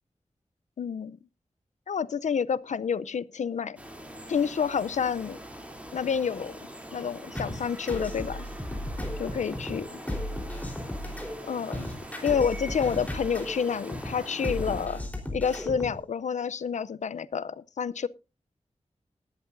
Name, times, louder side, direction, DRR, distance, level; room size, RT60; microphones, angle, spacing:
voice 1, 0.8-1.2 1.9-3.8 4.3-5.4 5.9-6.6 6.9-8.5 9.2-9.9 11.5-11.9 12.2-15.0 15.3-18.1, left 6 dB, 75° left, 0.5 m, -29 dB
sound 1, 3.8-14.9, equal, 10° right, 2.9 m, -43 dB
sound 2, 7.3-16.0, left 1 dB, 10° left, 3.8 m, -35 dB
18.5 x 11.5 x 2.6 m
wide cardioid pair, 100°, 12 cm